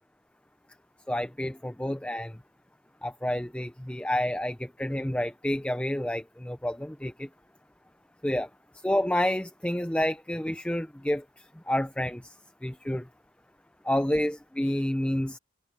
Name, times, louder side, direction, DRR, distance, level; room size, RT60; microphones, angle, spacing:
voice 1, 1.1-2.4 3.0-7.3 8.2-8.5 8.8-12.3 12.6-13.1 13.8-15.4, left 1 dB, 5° left, 0.5 m, -29 dB
open air
head